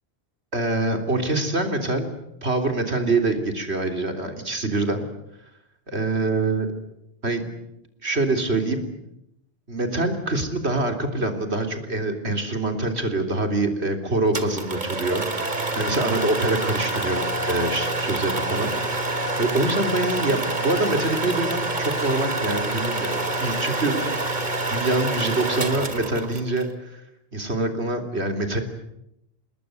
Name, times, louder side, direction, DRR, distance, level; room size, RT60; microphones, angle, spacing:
voice 1, 0.5-2.1 2.4-5.1 5.9-6.7 7.2-7.5 8.0-8.8 9.7-18.7 19.4-24.2 24.7-27.0 27.3-28.6, right 2 dB, 85° right, 5 dB, 3.7 m, -25 dB
sound 1, 14.3-26.6, right 2 dB, 45° right, 2.3 m, -27 dB
28.0 x 20.5 x 9.5 m, 0.81 s
omnidirectional pair, 1.1 m